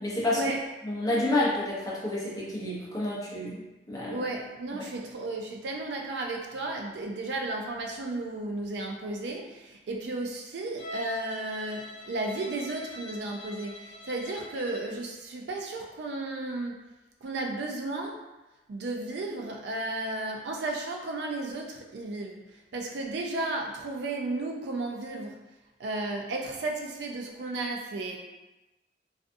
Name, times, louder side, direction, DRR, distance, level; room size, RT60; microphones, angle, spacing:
voice 1, 0.0-0.4 0.8-3.6 3.9-4.2 4.7-4.8, left 1 dB, 20° left, -6 dB, 0.6 m, -29 dB
voice 2, 4.0-16.8 17.2-18.2 18.7-22.4 22.7-25.4 25.8-28.2, right 2 dB, 70° right, 1 dB, 0.4 m, -34 dB
Bowed string instrument, 10.8-15.0, left 2 dB, 80° left, 0.4 m, -44 dB
2.5 x 2.3 x 2.5 m, 1.0 s
head